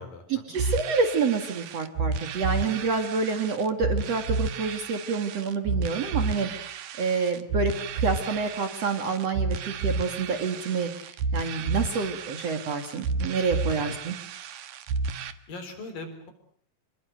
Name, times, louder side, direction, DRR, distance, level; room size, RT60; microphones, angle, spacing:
voice 1, 0.3-6.5 7.0-14.2, right 4 dB, 50° right, 7 dB, 3.1 m, -28 dB
sound 1, 0.5-15.3, right 4 dB, 75° right, 3.1 m, -31 dB
voice 2, 15.5-16.3, left 2 dB, 75° left, 8 dB, 5.8 m, -40 dB
28.0 x 21.5 x 7.9 m, 0.63 s
omnidirectional pair, 4.0 m